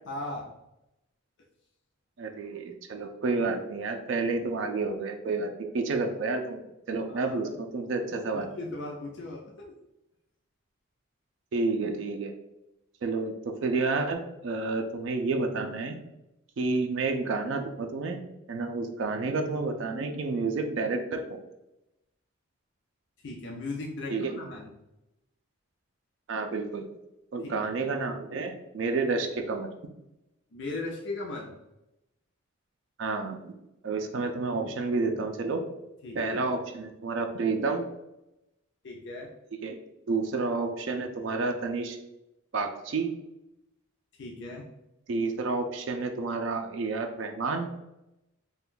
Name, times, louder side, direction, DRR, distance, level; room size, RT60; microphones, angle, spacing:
voice 1, 0.1-0.5 7.1-7.5 8.3-9.7 23.2-24.7 27.4-27.8 30.5-31.5 33.8-34.0 36.0-36.3 38.8-39.3 44.2-44.7, left 2 dB, 55° left, -1 dB, 0.4 m, -38 dB
voice 2, 2.2-6.6 6.9-8.5 11.5-12.3 13.0-16.0 16.6-18.2 18.5-21.4 24.1-24.4 26.3-26.9 27.3-29.7 33.0-33.5 33.8-35.6 36.1-37.8 39.6-39.7 40.1-42.0 42.5-43.1 45.1-47.7, right 3 dB, 65° right, 4 dB, 0.3 m, -30 dB
2.5 x 2.2 x 3.6 m, 0.91 s
head